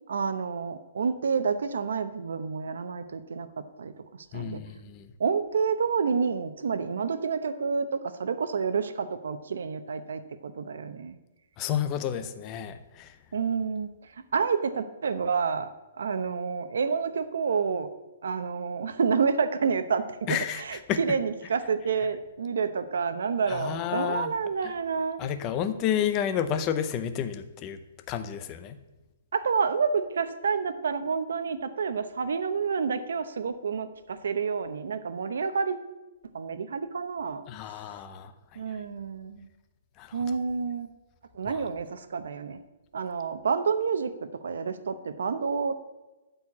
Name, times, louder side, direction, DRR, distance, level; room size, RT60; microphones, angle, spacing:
voice 1, 0.1-3.5 3.8-3.9 4.3-4.6 5.2-11.2 13.3-13.9 14.3-15.7 16.0-17.9 18.2-25.2 29.3-35.8 36.3-37.4 38.6-39.5 40.1-40.9 41.3-42.6 42.9-44.1 44.4-45.7, right 5 dB, 80° right, 11 dB, 0.9 m, -29 dB
voice 2, 4.3-5.1 11.6-13.1 20.3-21.2 23.5-24.3 24.6-24.7 25.2-27.8 28.1-28.8 37.5-38.3 40.0-40.2 41.5-41.6, left 9 dB, 20° left, 9 dB, 0.6 m, -31 dB
13.0 x 4.5 x 8.5 m, 1.1 s
hypercardioid pair, 180°, 0 cm